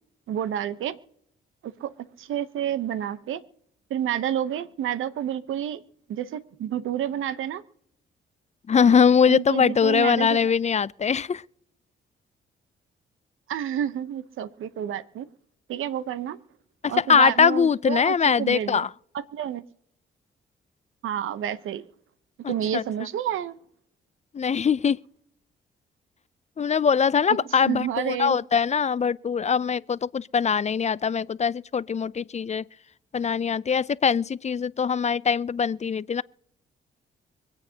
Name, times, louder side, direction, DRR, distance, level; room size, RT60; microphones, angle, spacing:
voice 1, 0.3-1.0 1.6-3.4 3.9-5.8 6.1-7.6 9.3-10.4 13.5-15.3 15.7-16.4 16.9-18.9 19.1-19.6 21.0-21.8 22.5-23.6 27.3-28.3, right 10 dB, 75° right, 0.9 m, -29 dB
voice 2, 8.7-11.4 16.8-18.9 22.4-22.8 24.3-25.0 26.6-32.6 33.1-36.2, left 6 dB, 35° left, 0.4 m, -22 dB
25.0 x 8.7 x 2.9 m
supercardioid pair, 50°, 21 cm